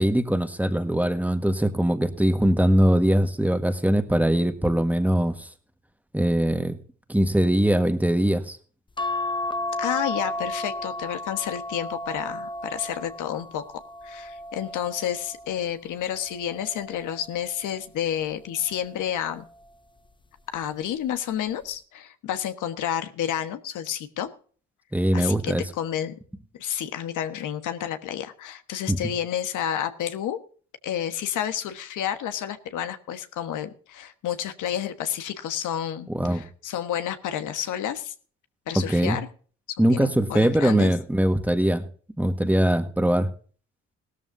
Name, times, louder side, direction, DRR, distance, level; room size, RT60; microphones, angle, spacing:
voice 1, 0.0-5.5 6.1-6.8 7.1-8.6 24.9-25.6 28.9-29.0 36.1-36.4 38.7-39.2 39.8-41.8 42.2-43.3, right 1 dB, 5° right, 9 dB, 1.4 m, -22 dB
sound 1, 9.0-15.6 16.2-17.6 18.9-19.3 19.6-19.7, left 1 dB, 15° left, 0.7 m, -33 dB
voice 2, 9.8-13.6 14.0-19.4 20.5-24.3 25.1-26.1 26.6-30.4 30.8-38.1 38.7-39.3 39.9-40.9, left 10 dB, 80° left, 9 dB, 1.3 m, -30 dB
17.0 x 13.0 x 2.6 m, 0.42 s
cardioid pair, 90°, 30 cm